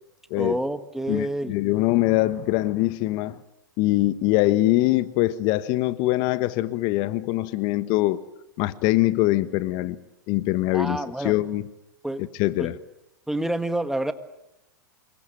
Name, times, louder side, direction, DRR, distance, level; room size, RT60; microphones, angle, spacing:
voice 1, 0.4-1.5 10.7-11.3 12.0-12.2 12.6-12.7 13.3-14.1, right 1 dB, 5° right, 1.7 m, -28 dB
voice 2, 1.1-3.4 3.8-8.2 8.6-10.0 10.3-11.7 12.2-12.8, left 17 dB, 45° left, 1.4 m, -23 dB
26.5 x 23.0 x 9.0 m
hypercardioid pair, 105°, 11 cm